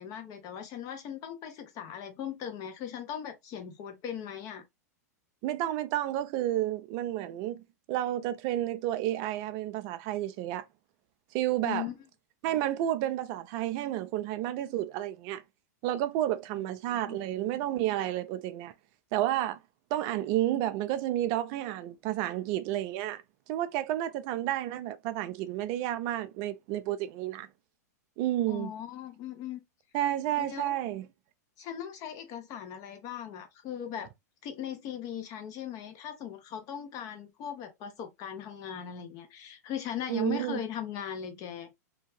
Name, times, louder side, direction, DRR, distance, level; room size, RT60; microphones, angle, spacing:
voice 1, 0.0-4.6 11.6-11.9 16.6-17.2 28.5-29.6 30.4-30.7 31.6-34.1 34.4-41.7, left 9 dB, 40° left, 0.9 m, -39 dB
voice 2, 5.4-7.6 7.9-10.7 11.3-11.9 12.4-15.4 15.8-18.7 19.1-19.6 19.9-23.2 23.5-27.5 28.2-28.7 29.9-31.1 40.1-40.6, right 13 dB, 45° right, 0.3 m, -31 dB
2.6 x 2.2 x 3.1 m
hypercardioid pair, 120°, 9 cm